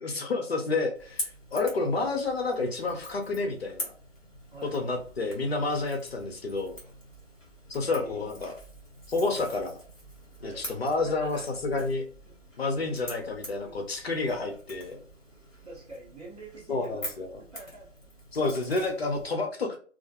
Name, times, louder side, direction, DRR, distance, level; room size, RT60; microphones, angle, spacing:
voice 1, 0.0-3.9 4.6-6.8 7.7-8.5 9.1-9.8 10.4-12.0 12.6-15.0 16.7-17.4 18.3-19.8, left 3 dB, 55° left, 3 dB, 0.6 m, -29 dB
Crackle / Crack, 0.9-19.3, equal, 5° left, 0.8 m, -45 dB
voice 2, 7.9-8.4 10.4-11.4 12.8-12.9 13.6-14.1 15.6-17.1 17.5-17.9, right 3 dB, 30° right, -6 dB, 1.1 m, -46 dB
2.4 x 2.1 x 2.7 m, 0.42 s
hypercardioid pair, 165°, 37 cm